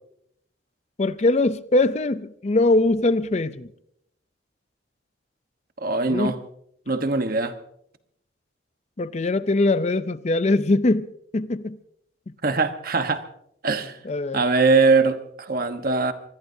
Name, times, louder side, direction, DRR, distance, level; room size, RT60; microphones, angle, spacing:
voice 1, 1.0-3.7 6.1-6.4 9.0-11.8 14.0-14.4, left 2 dB, 35° left, 0.5 m, -22 dB
voice 2, 5.8-6.4 6.9-7.5 12.4-13.2 13.6-14.0 14.3-16.1, right 4 dB, 50° right, 1.2 m, -21 dB
25.5 x 20.5 x 2.7 m
head